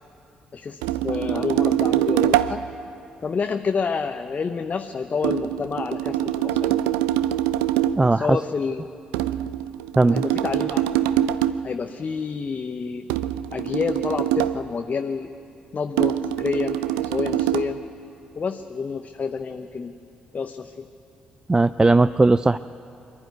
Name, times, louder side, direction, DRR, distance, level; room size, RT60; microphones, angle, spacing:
voice 1, 0.5-2.7 3.2-6.8 8.1-8.8 10.1-10.8 11.6-13.1 13.5-15.3 15.7-17.8 18.4-20.0 20.3-20.9, left 5 dB, 40° left, 7 dB, 0.8 m, -28 dB
sound 1, 0.8-2.6 5.2-8.1 9.1-11.7 13.1-14.7 16.0-17.8, right 12 dB, 75° right, 0.5 m, -24 dB
voice 2, 8.0-8.4 10.0-10.2 21.5-22.6, right 2 dB, 20° right, 14 dB, 0.4 m, -17 dB
24.0 x 11.5 x 9.5 m, 2.7 s
figure-of-eight pair, 40°, 4 cm